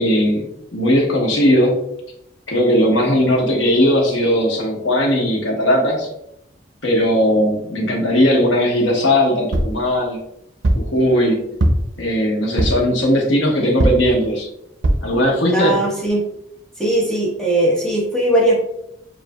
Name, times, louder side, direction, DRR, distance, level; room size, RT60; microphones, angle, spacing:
voice 1, 0.0-1.8 2.5-6.1 6.8-10.2 10.7-11.5 12.0-14.5 15.0-15.9, equal, 85° left, -1 dB, 1.1 m, -18 dB
sound 1, 9.5-9.8 10.6-10.9 11.6-12.0 12.6-12.9 13.8-14.1 14.8-15.1 15.7-15.8 16.1-16.2, right 1 dB, 80° right, 0.6 m, -18 dB
voice 2, 15.5-16.2 16.8-18.6, right 1 dB, 5° left, -5 dB, 0.9 m, -18 dB
7.2 x 2.4 x 2.2 m, 0.78 s
head